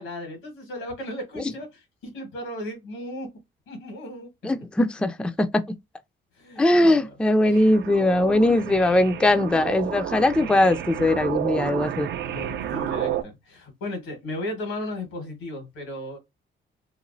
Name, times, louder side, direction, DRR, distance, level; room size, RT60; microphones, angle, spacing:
voice 1, 0.0-3.3 3.7-4.3 6.4-7.2 7.5-7.6 8.5-8.9 12.2-16.2, left 1 dB, 85° left, 1.5 m, -36 dB
voice 2, 4.4-5.5 6.6-12.1, left 1 dB, 5° left, 0.3 m, -20 dB
sound 1, 7.5-13.2, right 11 dB, 60° right, 0.4 m, -31 dB
3.0 x 2.5 x 2.6 m
cardioid pair, 90°, 20 cm